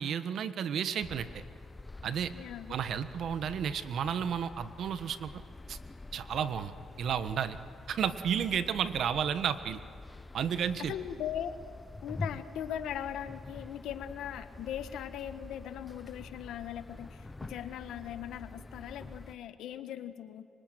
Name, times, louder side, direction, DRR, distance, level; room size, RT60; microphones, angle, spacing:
voice 1, 0.0-1.4 2.0-2.3 2.7-5.4 5.7-5.8 6.1-7.6 7.9-9.8 10.3-10.9, right 8 dB, 70° right, 11 dB, 1.4 m, -32 dB
sound 1, 1.0-19.4, left 3 dB, 20° left, 0.9 m, -47 dB
voice 2, 2.3-2.7 10.8-11.6 12.0-20.4, left 10 dB, 80° left, 10 dB, 1.5 m, -39 dB
25.0 x 24.5 x 9.2 m, 2.3 s
cardioid pair, 90°, 0 cm